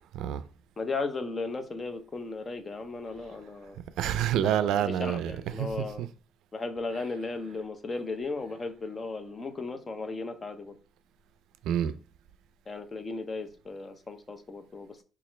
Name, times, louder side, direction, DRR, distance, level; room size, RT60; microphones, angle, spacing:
voice 1, 0.1-0.4 4.0-6.1 11.6-11.9, right 10 dB, 90° right, 0.3 m, -28 dB
voice 2, 0.8-3.8 4.4-6.0 6.5-10.7 12.7-15.0, left 3 dB, 30° left, 0.6 m, -36 dB
4.2 x 2.4 x 3.1 m
cardioid pair, 90°, 0 cm